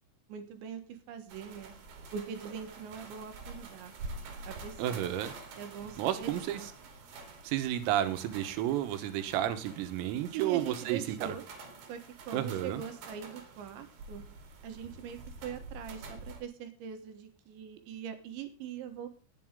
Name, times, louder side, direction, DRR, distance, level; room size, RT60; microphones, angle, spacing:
voice 1, 0.3-1.7 2.1-3.9 4.4-5.2 5.6-6.7 10.3-11.4 11.9-14.2 14.6-19.1, right 8 dB, 70° right, 7 dB, 3.4 m, -42 dB
sound 1, 1.3-16.4, right 3 dB, 55° right, 3.7 m, -48 dB
voice 2, 4.8-5.3 6.0-6.7 7.4-11.4 12.3-12.8, right 12 dB, 85° right, 10 dB, 3.9 m, -32 dB
19.5 x 8.6 x 3.7 m, 0.34 s
omnidirectional pair, 5.9 m